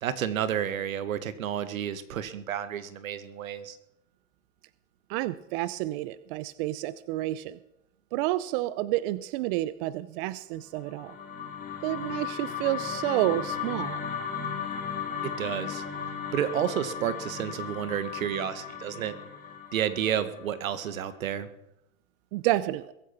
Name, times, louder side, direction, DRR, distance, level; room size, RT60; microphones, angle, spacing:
voice 1, 0.0-3.8 15.2-15.8 16.3-19.2 19.7-21.5, right 9 dB, 80° right, 13 dB, 1.8 m, -31 dB
voice 2, 5.1-7.6 8.1-11.2 11.8-14.0 22.3-22.9, right 16 dB, 40° right, 17 dB, 0.6 m, -30 dB
sound 1, 10.8-21.1, left 7 dB, 20° left, 3.9 m, -36 dB
22.0 x 8.7 x 5.9 m, 0.83 s
hypercardioid pair, 130°, 41 cm